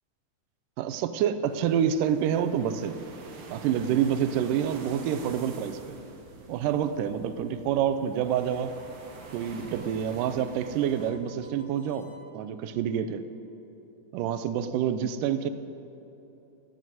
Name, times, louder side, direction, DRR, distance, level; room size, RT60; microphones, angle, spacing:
voice 1, 0.8-3.0 3.5-6.0 6.5-8.7 9.3-13.2 14.1-15.5, right 9 dB, 85° right, 11 dB, 2.3 m, -27 dB
sound 1, 1.5-11.1, right 4 dB, 55° right, 1.6 m, -46 dB
Harmonica, 8.2-12.3, left 1 dB, 75° left, 3.8 m, -55 dB
15.5 x 7.8 x 9.4 m, 3.0 s
omnidirectional pair, 3.8 m